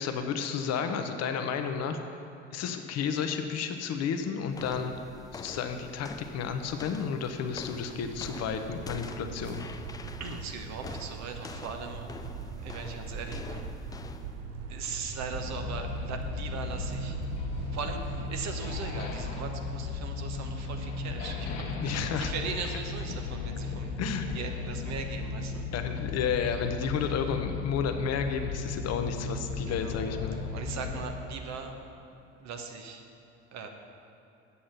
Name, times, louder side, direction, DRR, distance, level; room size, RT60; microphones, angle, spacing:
voice 1, 0.0-2.0 2.5-4.9 5.3-9.7 21.8-22.3 24.0-24.3 25.7-30.4, left 6 dB, 45° left, 6 dB, 0.9 m, -32 dB
sound 1, 4.5-14.4, left 4 dB, 10° left, 0.3 m, -45 dB
sound 2, 7.8-19.2, right 5 dB, 65° right, 0.9 m, -41 dB
voice 2, 10.2-12.0 12.6-13.7 14.7-17.2 17.7-23.9 24.3-25.6 26.8-26.9 29.7-29.9 30.5-31.7 32.4-33.0 33.5-33.7, right 5 dB, 50° right, 4 dB, 1.2 m, -39 dB
sound 3, 15.3-31.0, left 4 dB, 65° left, 1.4 m, -36 dB
8.4 x 7.5 x 5.8 m, 2.9 s
hypercardioid pair, 65°, 35 cm